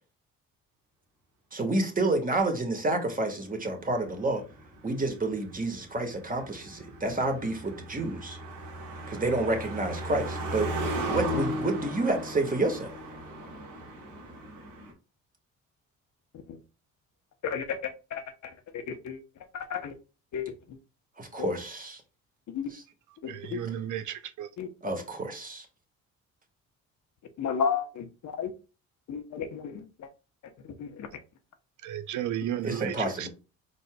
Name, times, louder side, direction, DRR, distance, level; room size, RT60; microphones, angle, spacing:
voice 1, 1.5-4.4 4.8-8.4 9.1-10.7 11.1-12.9 21.2-22.0 22.7-22.8 24.8-25.6 32.6-33.3, right 2 dB, 25° right, 1.5 m, -29 dB
Car passing by, 3.8-14.9, right 1 dB, 85° right, 1.6 m, -36 dB
voice 2, 17.4-19.2 19.5-20.0 20.3-20.8 21.4-21.5 22.5-22.7 23.2-23.6 24.6-24.7 27.4-28.5 29.1-30.1 30.6-31.1, left 7 dB, 60° left, 0.8 m, -33 dB
voice 3, 23.3-24.5 31.8-33.3, right 11 dB, 65° right, 0.5 m, -33 dB
4.5 x 4.1 x 2.2 m
supercardioid pair, 70°, 33 cm